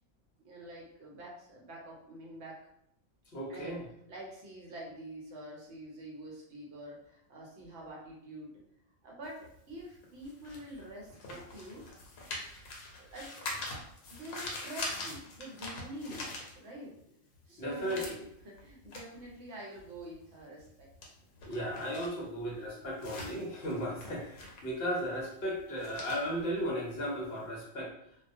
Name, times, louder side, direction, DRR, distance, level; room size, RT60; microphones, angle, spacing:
voice 1, 0.4-2.6 3.5-3.8 4.1-8.6 9.0-11.9 13.0-13.5 14.1-16.3 16.5-17.0 17.5-18.0 18.4-20.9, right 1 dB, 65° right, -3 dB, 0.9 m, -46 dB
voice 2, 3.3-3.9 17.6-18.2 21.4-27.9, equal, 60° left, -4 dB, 0.8 m, -35 dB
sound 1, 9.2-17.0 17.3-27.4, left 2 dB, 85° left, 1.0 m, -44 dB
2.3 x 2.1 x 2.5 m, 0.75 s
omnidirectional pair, 1.3 m